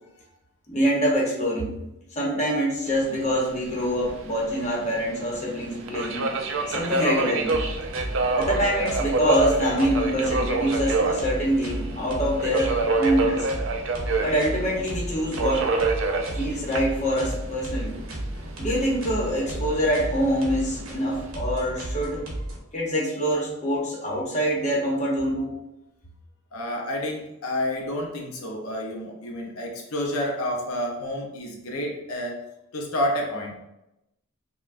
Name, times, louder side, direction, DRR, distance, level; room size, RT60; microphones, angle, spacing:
voice 1, 0.7-1.7 2.1-6.3 6.7-7.6 8.3-13.5 14.2-15.7 16.4-18.0 18.6-22.2 22.7-25.6, equal, 30° left, -3 dB, 0.9 m, -25 dB
Subway metro underground, 2.9-21.3, right 3 dB, 60° right, 0.4 m, -29 dB
sound 1, 7.4-22.6, right 1 dB, 80° right, 1.0 m, -33 dB
voice 2, 26.5-32.4 32.7-33.7, left 1 dB, 75° left, -1 dB, 0.6 m, -29 dB
5.3 x 2.2 x 2.5 m, 0.88 s
head